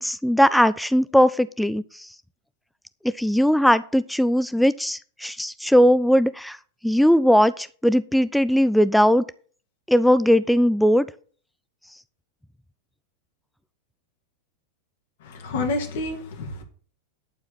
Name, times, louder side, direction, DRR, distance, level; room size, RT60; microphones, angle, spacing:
voice 1, 0.0-1.8 3.2-6.6 6.8-9.2 9.9-11.1, equal, ahead, 16 dB, 0.4 m, -19 dB
voice 2, 15.2-16.6, left 2 dB, 55° left, 4 dB, 2.3 m, -29 dB
11.5 x 4.8 x 7.6 m, 0.43 s
figure-of-eight pair, 90°, 0 cm